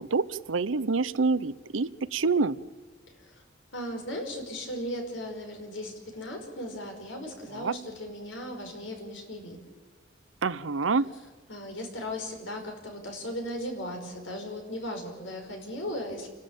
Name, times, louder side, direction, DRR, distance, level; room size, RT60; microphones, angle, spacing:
voice 1, 0.0-2.6 7.5-7.7 10.4-11.1, right 4 dB, 80° right, 16 dB, 0.7 m, -27 dB
voice 2, 3.7-9.6 11.5-16.3, left 1 dB, 75° left, 3 dB, 5.3 m, -37 dB
29.0 x 12.5 x 8.9 m, 1.3 s
head